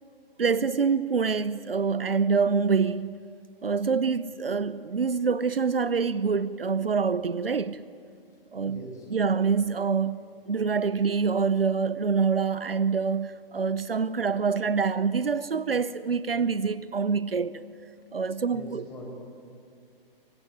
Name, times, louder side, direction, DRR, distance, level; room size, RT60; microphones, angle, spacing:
voice 1, 0.4-3.2 3.6-7.8 8.5-17.6 18.1-18.8, right 5 dB, 75° right, 0.8 m, -26 dB
voice 2, 8.7-9.1 18.5-19.1, equal, 10° left, 5.7 m, -41 dB
24.5 x 23.5 x 9.2 m
figure-of-eight pair, 125°, 29 cm